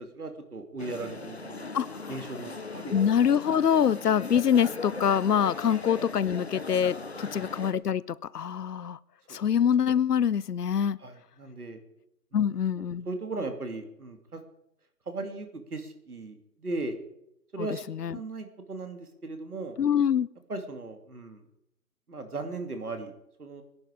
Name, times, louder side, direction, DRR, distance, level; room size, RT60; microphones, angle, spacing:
voice 1, 0.0-1.7 2.1-2.9 5.6-5.8 7.3-7.5 9.3-9.4 11.0-11.8 12.5-14.4 15.1-17.0 17.5-19.8 20.5-21.4 22.1-23.1 23.4-23.6, right 3 dB, 65° right, 6 dB, 2.5 m, -37 dB
sound 1, 0.8-7.7, left 3 dB, 40° left, 0.9 m, -39 dB
voice 2, 2.9-9.0 9.3-11.0 12.3-13.1 18.0-18.2 19.8-20.3, left 8 dB, 70° left, 20 dB, 0.6 m, -25 dB
19.5 x 10.5 x 5.0 m, 0.84 s
figure-of-eight pair, 175°, 49 cm